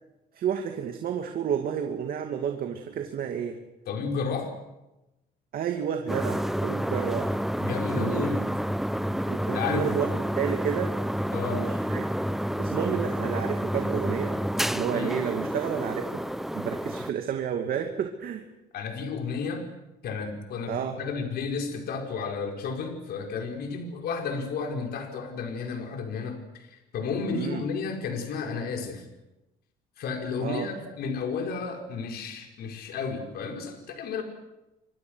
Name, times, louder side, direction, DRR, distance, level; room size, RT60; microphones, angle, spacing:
voice 1, 0.3-3.6 5.5-7.4 7.9-8.3 9.3-10.9 11.5-12.1 12.6-14.4 14.7-16.2 16.5-18.4 20.7-20.9 27.3-27.6 30.4-30.7, right 8 dB, 60° right, 4 dB, 2.5 m, -31 dB
voice 2, 3.9-4.5 7.6-8.5 9.5-9.9 11.3-11.7 14.9-15.2 18.7-19.7 20.0-29.0 30.0-34.2, left 5 dB, 65° left, 3 dB, 4.8 m, -32 dB
sound 1, 6.1-17.1, equal, ahead, 0.8 m, -29 dB
28.5 x 25.0 x 6.4 m, 0.96 s
cardioid pair, 110°, 17 cm